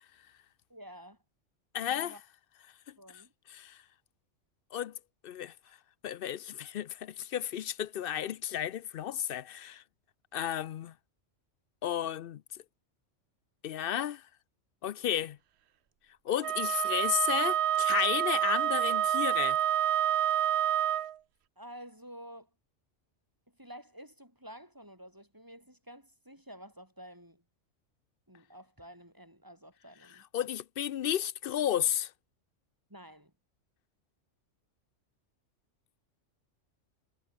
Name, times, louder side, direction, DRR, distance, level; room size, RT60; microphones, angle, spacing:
voice 1, 0.7-1.2 1.8-2.2 3.0-3.3 21.6-22.5 23.6-27.4 28.3-30.2 32.9-33.3, equal, 15° right, 5.9 m, -50 dB
voice 2, 1.7-2.1 3.5-3.8 4.7-5.0 5.2-5.5 6.0-9.8 10.3-10.9 11.8-12.4 13.6-14.2 14.8-15.4 16.3-19.6 30.3-32.1, left 10 dB, 60° left, 0.7 m, -33 dB
Wind instrument woodwind instrument, 16.4-21.1, right 11 dB, 65° right, 0.9 m, -28 dB
omnidirectional pair, 1.2 m